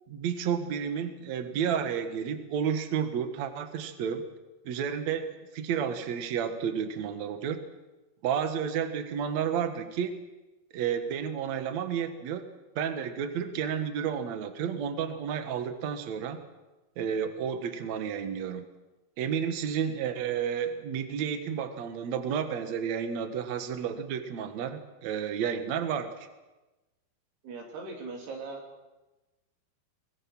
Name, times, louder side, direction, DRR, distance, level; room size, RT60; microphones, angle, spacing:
voice 1, 0.1-4.3 4.7-7.6 8.2-10.2 10.7-12.4 12.8-16.4 17.0-18.7 19.2-26.3, right 7 dB, 55° right, 8 dB, 2.4 m, -31 dB
voice 2, 27.4-28.6, right 3 dB, 90° right, 0 dB, 5.3 m, -39 dB
23.0 x 21.0 x 6.2 m, 1.1 s
omnidirectional pair, 4.5 m